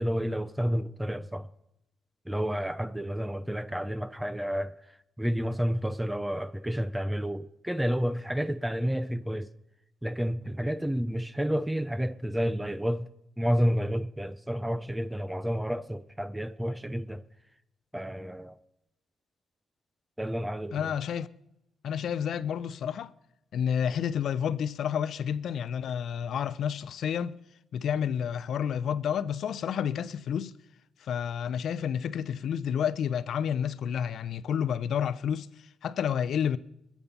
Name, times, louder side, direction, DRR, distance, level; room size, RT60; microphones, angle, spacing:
voice 1, 0.0-1.5 2.3-9.5 10.0-13.1 13.4-17.2 17.9-18.6 20.2-20.9, equal, 5° right, 0.5 m, -30 dB
voice 2, 20.7-21.3 21.8-23.1 23.5-27.4 27.7-30.5 31.0-35.5 35.8-36.6, left 8 dB, 65° left, 0.6 m, -30 dB
21.0 x 7.3 x 5.5 m
cardioid pair, 90°, 0 cm